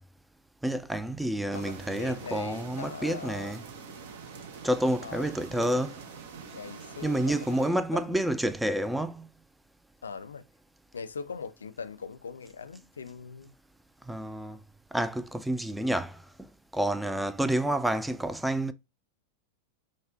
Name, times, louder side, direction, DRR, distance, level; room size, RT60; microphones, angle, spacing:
voice 1, 0.6-3.6 4.6-6.0 7.0-9.3 14.1-14.6 14.9-16.2 16.7-18.7, right 1 dB, 5° right, 0.3 m, -29 dB
voice 2, 1.5-3.6 5.0-5.3 6.5-8.3 10.0-10.4 10.9-13.5, left 5 dB, 70° left, 0.4 m, -41 dB
sound 1, 1.5-7.7, right 5 dB, 55° right, 0.6 m, -45 dB
5.1 x 2.1 x 2.5 m
figure-of-eight pair, 90°, 0 cm